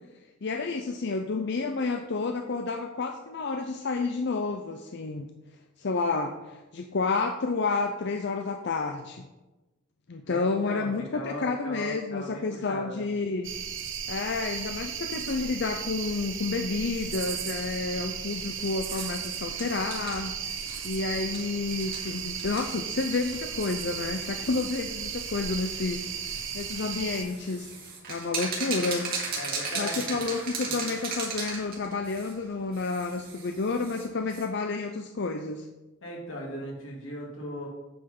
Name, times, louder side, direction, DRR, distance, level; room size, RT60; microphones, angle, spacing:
voice 1, 0.4-5.3 5.8-9.2 10.1-13.5 14.1-20.6 20.8-26.2 26.5-27.7 28.1-29.1 29.8-35.7, left 3 dB, 60° left, 5 dB, 0.6 m, -30 dB
voice 2, 10.2-13.0 29.3-30.3 30.7-30.8 36.0-37.7, left 1 dB, 90° left, -2 dB, 2.8 m, -38 dB
sound 1, 13.4-27.2, right 7 dB, 70° right, 0.9 m, -35 dB
sound 2, 16.9-34.5, right 4 dB, 50° right, 2.6 m, -39 dB
8.6 x 5.8 x 5.4 m, 1.1 s
head